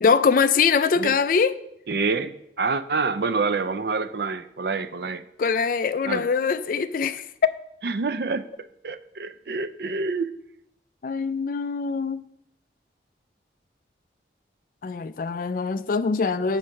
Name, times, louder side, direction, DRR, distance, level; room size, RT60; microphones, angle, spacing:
voice 1, 0.0-1.5 5.4-7.5 11.0-12.2 14.8-16.6, left 5 dB, 50° left, 13 dB, 0.4 m, -23 dB
voice 2, 1.9-5.3 6.0-6.3 7.8-8.5 8.8-10.3, right 4 dB, 60° right, 13 dB, 0.5 m, -27 dB
7.3 x 5.4 x 6.3 m, 0.79 s
head